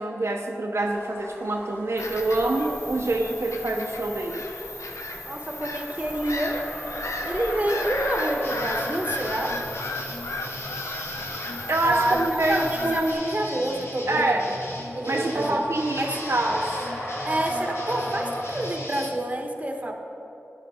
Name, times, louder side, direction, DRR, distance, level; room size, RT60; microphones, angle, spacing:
voice 1, 0.0-4.4 11.7-13.2 14.1-14.5 15.1-16.7, right 2 dB, 60° right, 0 dB, 0.8 m, -26 dB
sound 1, 0.8-2.3 2.6-18.7, equal, 45° left, 2.9 m, -39 dB
Bird vocalization bird call bird song / Gull seagull, 2.0-13.1, left 2 dB, 85° left, 0.9 m, -34 dB
voice 2, 5.2-6.7 7.2-9.6 11.8-14.4 14.9-15.6 16.0-16.2 17.2-19.9, right 1 dB, 25° right, 3 dB, 1.3 m, -28 dB
sound 2, 8.4-19.1, left 1 dB, 60° left, 1.6 m, -38 dB
12.5 x 9.9 x 4.3 m, 2.9 s
wide cardioid pair, 55°, 5 cm